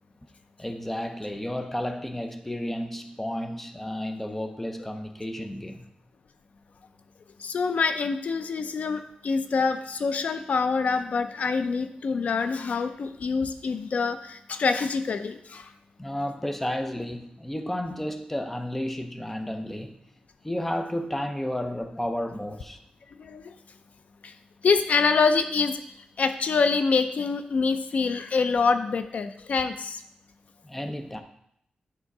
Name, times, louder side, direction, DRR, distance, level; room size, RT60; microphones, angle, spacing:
voice 1, 0.6-5.9 16.0-20.0 20.4-22.8 30.6-31.2, left 1 dB, 10° left, 0.6 m, -32 dB
voice 2, 7.4-15.7 23.2-23.5 24.2-24.3 24.6-25.8 26.2-30.0, left 4 dB, 65° left, 0.5 m, -25 dB
9.8 x 3.7 x 4.7 m
wide cardioid pair, 125°, 3 cm